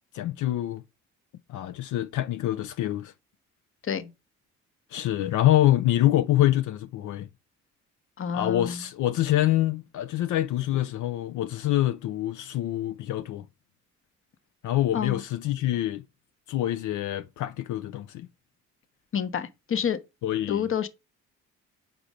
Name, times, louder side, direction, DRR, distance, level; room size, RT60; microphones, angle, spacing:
voice 1, 0.1-0.8 1.5-3.1 4.9-7.3 8.3-13.5 14.6-16.0 16.5-18.3 20.2-20.7, left 14 dB, 80° left, 0.5 m, -25 dB
voice 2, 8.2-8.8 14.9-15.2 19.1-20.0 20.5-20.9, left 8 dB, 45° left, 0.9 m, -28 dB
5.3 x 4.3 x 5.0 m
cardioid pair, 90°, 30 cm